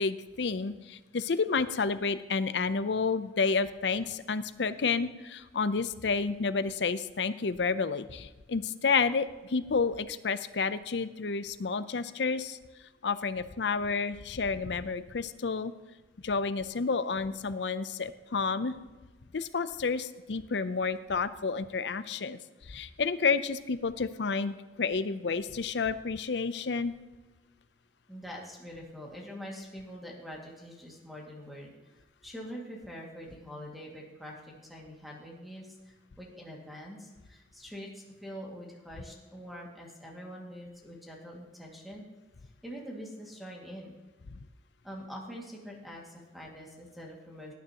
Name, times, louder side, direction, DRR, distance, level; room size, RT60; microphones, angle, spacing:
voice 1, 0.0-12.6 13.0-15.7 16.2-18.7 19.3-22.4 22.7-26.9, left 4 dB, 75° left, 13 dB, 0.6 m, -30 dB
voice 2, 28.1-31.7 32.2-42.0 42.6-44.0 44.8-47.5, equal, ahead, -2 dB, 2.1 m, -44 dB
18.0 x 9.4 x 2.9 m, 1.2 s
head